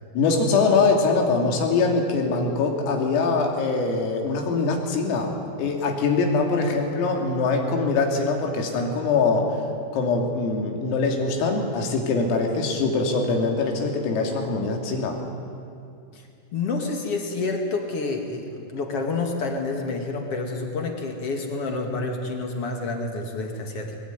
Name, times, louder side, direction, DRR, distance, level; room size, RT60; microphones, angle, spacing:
voice 1, 0.2-9.5 9.9-15.2, left 4 dB, 85° left, 1 dB, 5.4 m, -23 dB
voice 2, 16.5-24.0, left 3 dB, 55° left, 3 dB, 1.7 m, -28 dB
22.0 x 21.0 x 9.6 m, 2.5 s
omnidirectional pair, 5.9 m